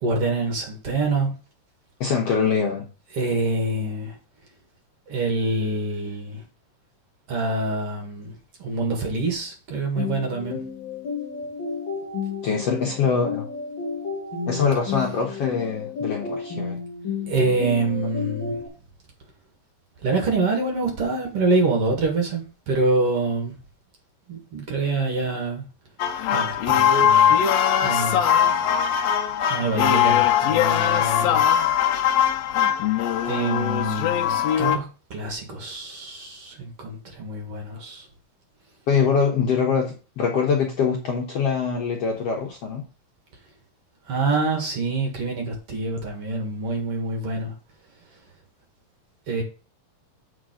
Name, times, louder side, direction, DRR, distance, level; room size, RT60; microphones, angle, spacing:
voice 1, 0.0-1.3 3.1-4.1 5.1-6.4 7.3-8.3 8.6-10.6 17.3-18.6 20.0-23.5 24.3-25.6 26.3-27.4 27.8-28.2 29.5-31.4 33.2-34.9 35.1-38.0 44.1-47.5 49.3-49.4, right 3 dB, 50° right, 2.4 m, -26 dB
voice 2, 2.0-2.9 12.4-13.5 14.5-16.8 38.9-42.8, left 6 dB, 65° left, 1.6 m, -23 dB
sound 1, 10.0-18.7, left 5 dB, 45° left, 1.8 m, -32 dB
sound 2, 26.0-34.8, left 9 dB, 90° left, 1.5 m, -20 dB
7.5 x 4.9 x 5.0 m
omnidirectional pair, 3.9 m